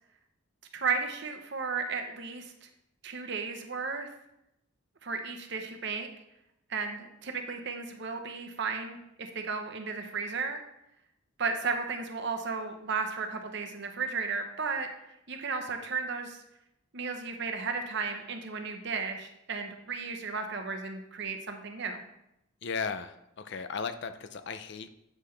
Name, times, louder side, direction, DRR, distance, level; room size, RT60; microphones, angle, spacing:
voice 1, 0.7-2.5 3.0-4.1 5.0-6.1 6.7-10.6 11.4-14.9 15.3-16.4 16.9-22.0, right 4 dB, 55° right, 5 dB, 0.8 m, -34 dB
voice 2, 22.6-24.9, left 5 dB, 55° left, 11 dB, 0.5 m, -36 dB
8.3 x 5.6 x 3.3 m, 0.84 s
head